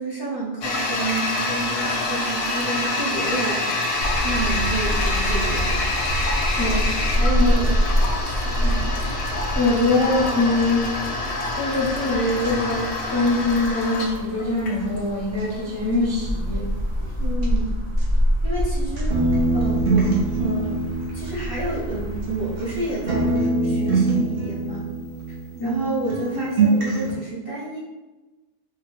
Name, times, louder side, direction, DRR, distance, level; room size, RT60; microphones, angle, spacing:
voice 1, 0.0-3.8 4.2-5.9 7.1-7.7 8.3-9.0 17.2-17.7 18.4-19.2 19.5-20.1 20.4-20.8 21.1-24.9 25.6-27.8, right 2 dB, 25° right, -7 dB, 0.6 m, -29 dB
Toilet flush, 0.6-17.3, left 2 dB, 65° left, 0.8 m, -27 dB
sound 1, 4.0-23.4, equal, 70° right, 1.1 m, -26 dB
voice 2, 6.6-7.0 7.4-7.5 8.5-8.8 9.5-11.0 11.5-16.7 25.6-25.9, left 2 dB, 25° left, -7 dB, 0.4 m, -23 dB
sound 2, 19.1-22.8 23.1-25.8 26.1-27.1, right 3 dB, 50° right, 0.9 m, -24 dB
3.9 x 2.2 x 3.0 m, 1.1 s
omnidirectional pair, 1.3 m